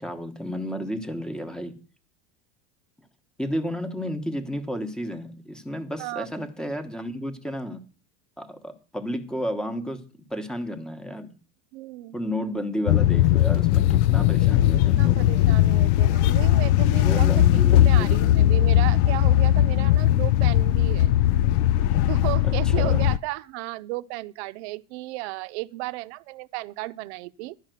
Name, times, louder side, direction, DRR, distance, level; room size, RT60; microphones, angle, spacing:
voice 1, 0.0-1.8 3.4-7.8 8.4-10.0 10.3-11.4 12.1-15.3 17.0-18.1 22.4-23.0, equal, ahead, 1.0 m, -32 dB
voice 2, 6.0-6.5 11.7-12.3 14.7-21.1 22.1-27.6, right 19 dB, 60° right, 0.7 m, -34 dB
sound 1, 12.9-23.2, left 13 dB, 65° left, 0.5 m, -19 dB
12.0 x 5.7 x 9.1 m
supercardioid pair, 160°, 37 cm